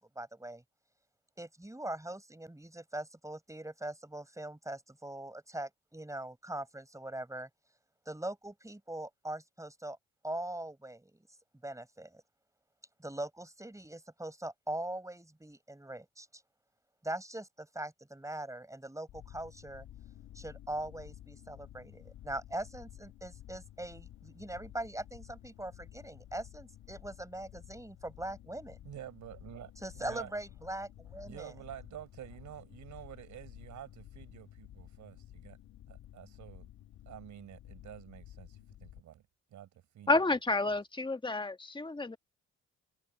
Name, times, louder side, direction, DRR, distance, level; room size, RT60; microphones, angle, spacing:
voice 1, 0.2-0.6 1.4-7.5 8.1-10.0 10.2-11.2 11.6-12.2 13.0-16.4 17.0-19.9 20.3-28.8 29.8-31.5, right 1 dB, 10° right, 5.2 m, -41 dB
sound 1, 19.1-39.0, left 12 dB, 80° left, 2.8 m, -53 dB
voice 2, 28.8-30.3 31.3-35.6 35.9-36.7 37.1-39.2 39.5-39.7 39.9-40.2, right 11 dB, 75° right, 5.6 m, -49 dB
voice 3, 40.1-42.2, left 2 dB, 15° left, 1.6 m, -30 dB
supercardioid pair, 55°, 30 cm